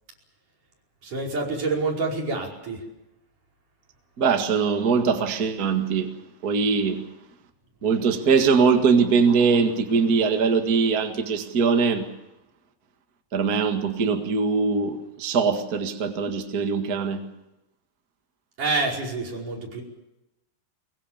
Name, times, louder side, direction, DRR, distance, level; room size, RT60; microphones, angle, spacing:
voice 1, 1.0-2.8 18.6-19.8, right 3 dB, 45° right, 6.4 m, -27 dB
voice 2, 4.2-6.2 6.4-7.0 7.8-12.1 13.3-17.3, right 5 dB, 60° right, 0.9 m, -22 dB
23.5 x 22.5 x 7.3 m
omnidirectional pair, 5.0 m